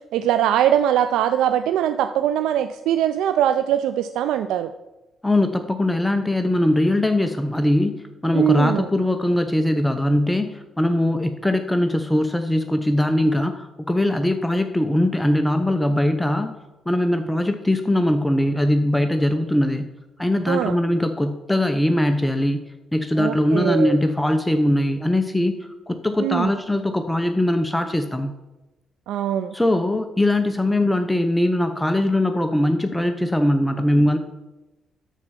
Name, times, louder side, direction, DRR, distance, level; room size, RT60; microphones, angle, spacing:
voice 1, 0.1-4.7 8.3-8.9 20.5-20.8 23.2-24.0 26.2-26.5 29.1-29.5, right 10 dB, 90° right, 10 dB, 0.4 m, -21 dB
voice 2, 5.2-16.6 16.9-19.8 20.2-22.6 22.9-25.6 25.9-28.3 29.5-34.2, left 1 dB, 5° left, 7 dB, 0.7 m, -21 dB
12.5 x 4.5 x 5.8 m, 1.0 s
cardioid pair, 90°, 0 cm